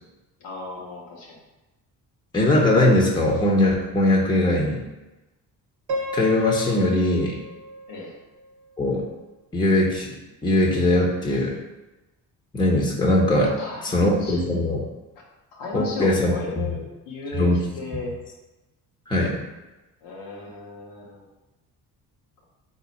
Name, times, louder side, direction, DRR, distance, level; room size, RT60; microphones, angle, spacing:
voice 1, 0.4-1.4 7.9-8.1 13.4-14.6 15.5-17.5 17.7-18.1 20.0-21.3, left 3 dB, 90° left, -4 dB, 1.0 m, -35 dB
voice 2, 2.3-4.8 6.1-7.4 8.8-9.0 9.5-10.2 10.4-11.6 12.5-13.5 13.9-14.8 15.7-16.7 17.4-17.6 19.1-19.4, left 1 dB, 10° left, -2 dB, 0.9 m, -20 dB
Piano, 5.9-8.9, right 1 dB, 60° right, 0.9 m, -34 dB
4.0 x 2.7 x 4.1 m, 1.1 s
supercardioid pair, 65°, 42 cm